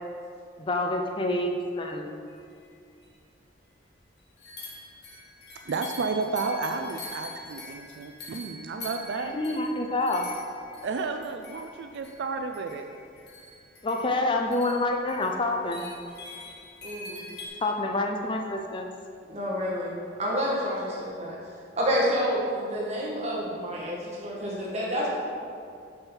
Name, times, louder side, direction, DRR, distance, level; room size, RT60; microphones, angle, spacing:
voice 1, 0.6-2.2 9.3-10.3 13.8-15.9 17.6-18.9, left 2 dB, 25° left, 3 dB, 0.4 m, -27 dB
sound 1, 2.7-2.8 3.0-3.1 4.4-17.5, left 2 dB, 60° left, 1.6 m, -44 dB
voice 2, 5.7-9.6 10.8-12.9, right 4 dB, 70° right, 6 dB, 0.3 m, -32 dB
voice 3, 16.8-17.2 19.3-21.4 21.8-25.1, equal, 35° right, -6 dB, 1.7 m, -29 dB
6.6 x 5.5 x 4.5 m, 2.4 s
head